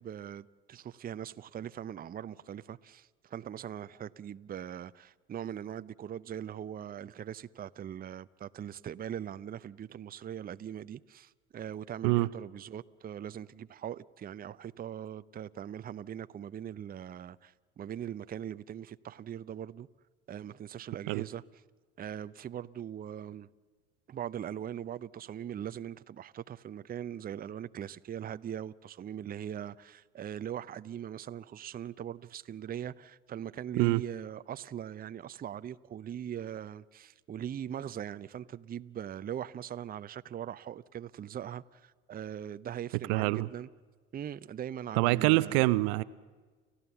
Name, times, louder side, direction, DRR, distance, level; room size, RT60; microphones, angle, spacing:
voice 1, 0.0-19.9 20.3-21.4 22.0-23.5 24.1-43.7 44.1-45.7, right 9 dB, 30° right, 0.6 m, -41 dB
voice 2, 43.1-43.5 45.0-46.0, right 21 dB, 70° right, 0.7 m, -25 dB
30.0 x 14.5 x 7.1 m
hypercardioid pair, 70°, 31 cm